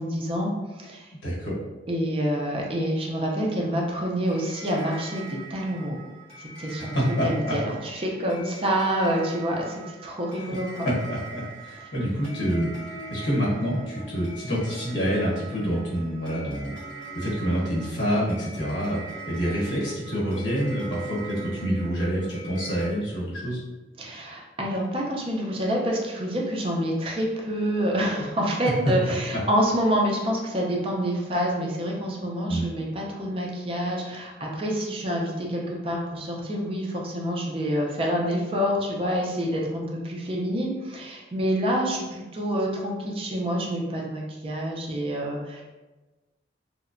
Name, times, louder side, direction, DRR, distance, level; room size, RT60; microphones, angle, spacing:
voice 1, 0.0-1.1 1.9-6.0 6.4-6.9 7.2-9.7 10.0-10.9 24.0-45.6, equal, 30° right, -1 dB, 0.4 m, -27 dB
voice 2, 1.2-1.6 6.9-7.5 10.8-12.7 13.1-16.7 17.1-19.0 19.3-23.6 29.3-29.4 32.5-32.7, equal, 80° left, -5 dB, 1.0 m, -27 dB
sound 1, 4.3-22.9, right 2 dB, 5° left, 0.8 m, -42 dB
2.8 x 2.1 x 2.4 m, 1.2 s
head